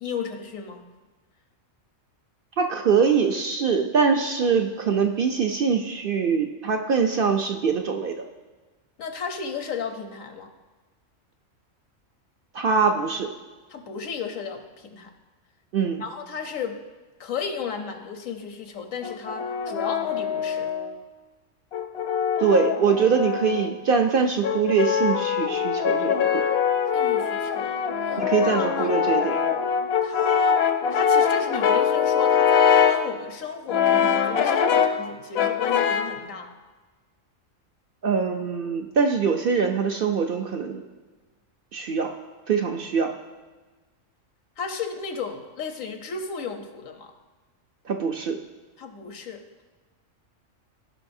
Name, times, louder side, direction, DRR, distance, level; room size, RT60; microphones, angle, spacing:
voice 1, 0.0-0.9 9.0-10.5 13.7-15.1 16.0-16.8 17.2-20.7 26.9-28.9 30.0-30.6 30.9-36.5 44.6-47.1 48.8-49.6, left 5 dB, 90° left, 5 dB, 1.3 m, -34 dB
voice 2, 2.6-8.2 12.5-13.3 15.7-16.0 22.4-26.4 28.2-29.4 38.0-40.8 41.7-42.1 42.5-43.1 47.9-48.4, right 5 dB, 60° right, 4 dB, 0.6 m, -23 dB
Brass instrument, 19.0-21.0 21.7-23.8 24.4-33.1 33.7-35.0 35.4-36.2, left 7 dB, 65° left, 0.7 m, -23 dB
15.5 x 5.5 x 2.6 m, 1.3 s
omnidirectional pair, 1.3 m